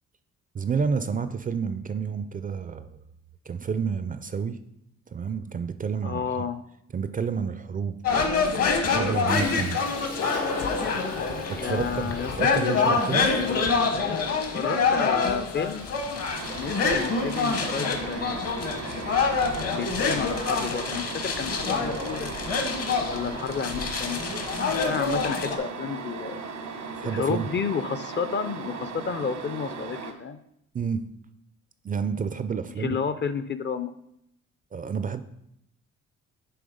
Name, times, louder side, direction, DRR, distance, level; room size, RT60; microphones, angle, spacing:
voice 1, 0.5-2.9 3.5-4.6 5.1-6.4 6.9-8.3 8.8-9.8 11.5-13.3 27.0-27.5 30.7-31.1 31.8-33.0 34.7-35.2, right 6 dB, 30° right, 12 dB, 0.4 m, -30 dB
voice 2, 6.0-6.6 11.5-13.0 13.3-13.7 14.5-15.8 16.5-18.5 19.6-22.3 23.0-24.3 24.8-26.4 27.0-30.4 32.8-33.9, left 6 dB, 40° left, 12 dB, 0.5 m, -31 dB
sound 1, 8.0-25.6, left 4 dB, 55° left, 1.1 m, -26 dB
Toilet flush, 9.2-18.6, left 3 dB, 85° left, 1.6 m, -36 dB
sound 2, 16.3-30.1, right 4 dB, 85° right, 1.1 m, -37 dB
7.8 x 3.3 x 5.1 m, 0.76 s
cardioid pair, 90°, 30 cm